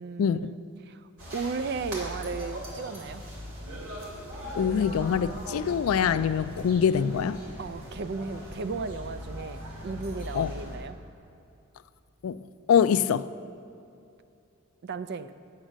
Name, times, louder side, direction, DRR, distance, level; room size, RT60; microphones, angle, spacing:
voice 1, 0.0-3.2 7.6-11.0 14.8-15.3, right 4 dB, 50° right, 0.4 m, -35 dB
sound 1, 1.2-10.8, equal, 85° right, 2.8 m, -39 dB
voice 2, 4.6-7.4 10.3-10.5 12.2-12.4 12.7-13.3, left 7 dB, 75° left, 0.3 m, -24 dB
8.9 x 8.7 x 6.3 m
head